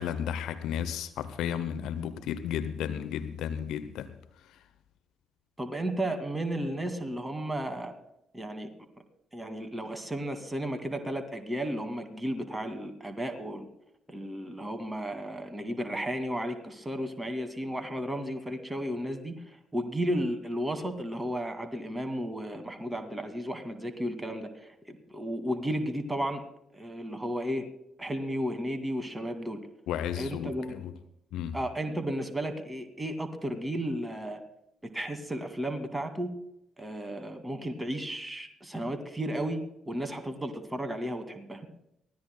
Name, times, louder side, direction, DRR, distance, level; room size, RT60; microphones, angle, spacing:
voice 1, 0.0-4.1 4.5-4.6 29.9-30.9 31.3-31.6, left 9 dB, 65° left, 0.7 m, -33 dB
voice 2, 5.6-7.9 8.3-8.7 9.3-13.6 14.1-26.4 26.7-27.6 28.0-29.6 30.2-30.7 31.5-34.4 34.8-36.3 36.8-39.6 39.9-41.7, equal, 15° right, 2.2 m, -33 dB
23.5 x 16.5 x 2.2 m
figure-of-eight pair, 40°, 0 cm